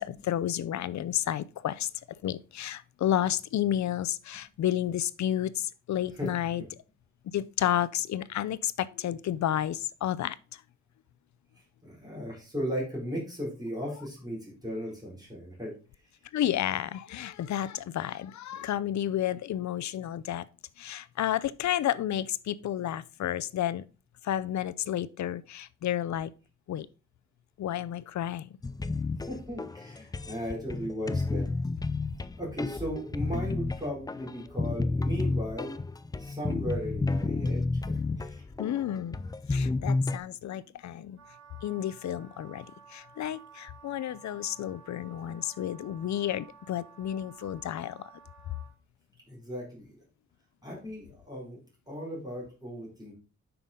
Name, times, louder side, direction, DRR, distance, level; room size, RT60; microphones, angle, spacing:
voice 1, 0.0-1.9 2.2-6.6 7.3-10.6 16.3-20.4 20.8-23.8 24.2-26.3 26.7-26.9 27.6-28.6 38.6-39.2 39.5-41.2 41.6-48.1, left 11 dB, 70° left, 0.6 m, -31 dB
voice 2, 11.8-15.7 29.3-31.4 32.4-35.8 36.2-38.4 49.3-50.0 50.6-51.6 51.9-53.2, equal, 15° right, 4.5 m, -36 dB
sound 1, 28.6-40.2, left 3 dB, 15° left, 0.3 m, -31 dB
Wind instrument woodwind instrument, 41.2-48.7, right 6 dB, 60° right, 3.2 m, -54 dB
9.1 x 5.9 x 3.7 m
wide cardioid pair, 165°, 29 cm